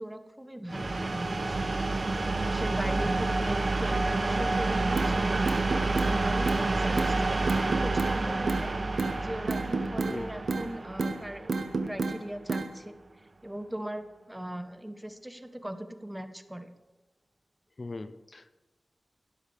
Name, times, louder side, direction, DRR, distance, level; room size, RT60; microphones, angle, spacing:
voice 1, 0.0-1.7 2.4-5.4 6.0-8.7 9.2-13.0 13.4-16.7, right 1 dB, 10° right, 8 dB, 1.1 m, -39 dB
sound 1, 0.7-12.3, right 3 dB, 50° right, 1.0 m, -29 dB
voice 2, 2.8-3.3 10.1-10.3 17.8-18.6, left 3 dB, 45° left, 10 dB, 0.7 m, -40 dB
sound 2, 5.0-5.1 5.5-6.1 6.5-6.6 7.0-7.1 7.5-8.1 8.5-8.7 9.0-9.1 9.5-10.2 10.5-10.7 11.0-11.2 11.5-12.2 12.5-12.7, right 3 dB, 80° right, 1.1 m, -29 dB
17.0 x 12.5 x 3.5 m, 1.1 s
wide cardioid pair, 85°, 0 cm